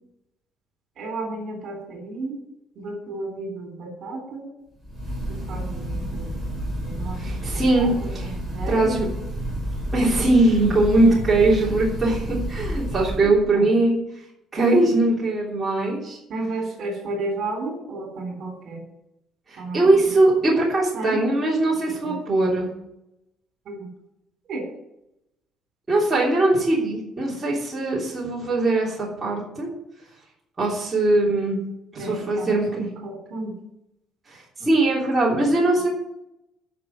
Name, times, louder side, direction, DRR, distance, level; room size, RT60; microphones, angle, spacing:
voice 1, 1.0-2.4 2.8-4.5 5.3-6.4 6.8-9.1 11.1-11.2 13.2-13.6 16.3-18.8 19.6-20.0 20.9-21.2 21.8-22.2 23.7-23.9 24.5-24.7 32.0-33.5, right 2 dB, 50° right, 2 dB, 3.6 m, -33 dB
Breathing / Bird, 4.8-13.3, right 1 dB, 5° left, 4.7 m, -30 dB
voice 2, 7.2-8.3 8.7-9.1 9.9-13.9 14.5-16.2 19.5-22.7 25.9-29.7 30.6-31.6 31.9-32.9 34.3-35.9, right 2 dB, 10° right, -6 dB, 3.2 m, -21 dB
10.5 x 6.2 x 8.7 m, 0.84 s
cardioid pair, 165°, 0 cm